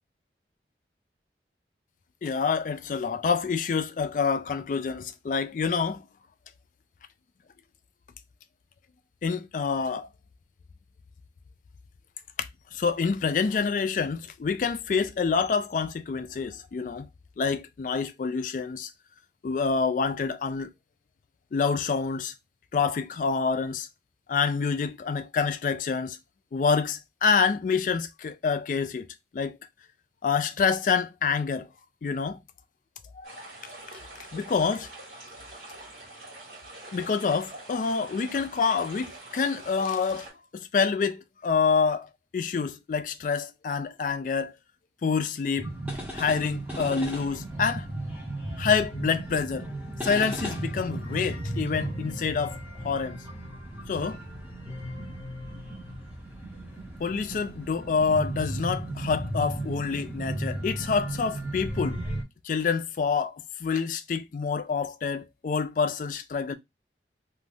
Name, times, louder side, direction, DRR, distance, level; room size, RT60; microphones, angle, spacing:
voice 1, 2.2-6.0 9.2-10.1 12.4-17.1 17.4-18.9 19.4-20.7 21.5-22.3 22.7-23.9 24.3-26.2 26.5-29.1 29.3-29.6 30.2-31.7 32.0-32.4 33.1-33.4 34.3-34.9 36.9-40.3 40.5-44.5 45.0-45.7 46.1-47.9 48.6-49.7 50.0-52.6 52.8-53.2 53.9-54.2 57.0-62.0 62.4-66.5, left 5 dB, 45° left, 0.3 m, -27 dB
sound 1, 33.2-40.3, right 2 dB, 50° right, 1.6 m, -45 dB
sound 2, 45.6-62.2, right 1 dB, 10° right, 1.0 m, -35 dB
2.5 x 2.4 x 3.3 m
head